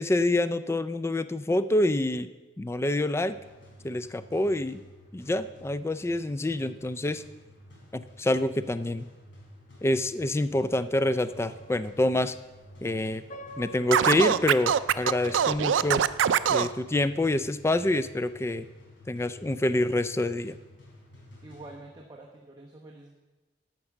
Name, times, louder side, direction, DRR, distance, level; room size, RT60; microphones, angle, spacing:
voice 1, 0.0-2.3 2.6-3.3 3.8-4.8 5.1-7.2 7.9-9.0 9.8-12.4 12.8-13.2 13.6-16.0 16.5-18.7 19.1-20.6, left 1 dB, 15° left, 13 dB, 0.3 m, -27 dB
sound 1, 3.2-22.2, left 1 dB, 80° left, 4.0 m, -52 dB
sound 2, 11.2-16.8, right 2 dB, 40° left, 0.8 m, -47 dB
Scratching (performance technique), 13.9-16.7, right 8 dB, 85° right, 0.4 m, -23 dB
voice 2, 21.4-23.2, right 2 dB, 20° right, -1 dB, 1.0 m, -47 dB
11.5 x 5.9 x 7.2 m, 1.2 s
head